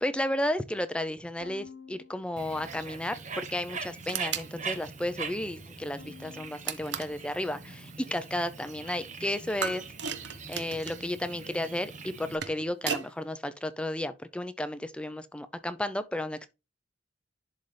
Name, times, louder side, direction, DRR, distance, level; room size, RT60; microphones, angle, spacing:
voice 1, 0.0-9.8 10.5-16.5, left 1 dB, 5° left, 0.5 m, -33 dB
Bowed string instrument, 1.4-3.8 4.2-5.0 6.0-8.5, left 5 dB, 75° left, 1.6 m, -54 dB
Bird, 2.4-12.4, right 5 dB, 40° right, 1.0 m, -42 dB
sound 1, 4.1-4.5 6.6-7.2 9.6-11.0 12.1-13.1, right 7 dB, 65° right, 0.8 m, -35 dB
11.0 x 4.0 x 3.3 m
head